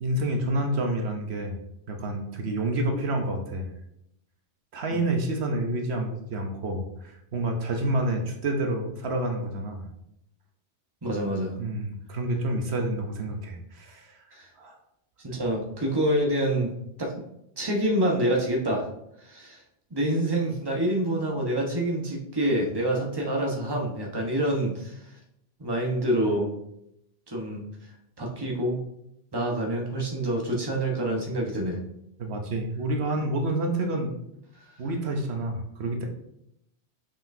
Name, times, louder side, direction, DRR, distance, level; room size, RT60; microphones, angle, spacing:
voice 1, 0.0-1.6 1.9-3.7 4.7-9.9 11.6-14.2 14.6-14.8 32.2-34.1 34.8-36.0, right 1 dB, 80° right, 3 dB, 1.2 m, -28 dB
voice 2, 11.0-11.5 14.3-14.5 15.2-16.7 17.0-17.1 17.6-18.8 19.2-19.6 19.9-25.1 25.6-26.5 27.3-27.6 28.2-28.8 29.3-31.8, right 1 dB, 25° right, -1 dB, 1.2 m, -27 dB
6.9 x 5.8 x 2.7 m, 0.79 s
omnidirectional pair, 1.1 m